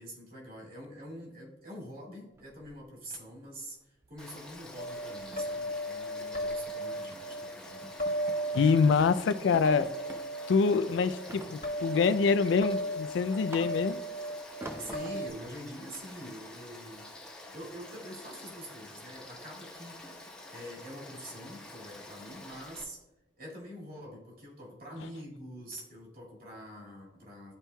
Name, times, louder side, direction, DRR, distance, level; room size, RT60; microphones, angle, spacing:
voice 1, 0.0-7.9 14.8-20.0 20.5-23.0 23.4-27.5, equal, 50° right, 2.2 m, -45 dB
sound 1, 2.4-3.2 3.5-3.7 4.0-4.2 4.5-4.6 5.0-6.6 7.1-7.4 7.8-8.8 9.1-9.2 9.5-10.3 11.3-12.0 12.5-14.1 14.6-15.4, right 1 dB, 15° right, 0.5 m, -47 dB
Frog / Stream, 4.2-22.8, left 1 dB, 5° left, 1.0 m, -48 dB
sound 2, 4.8-15.3, right 1 dB, 50° left, 1.2 m, -36 dB
voice 2, 8.5-9.9 10.5-14.0, left 5 dB, 85° left, 0.3 m, -25 dB
12.0 x 4.4 x 2.2 m
head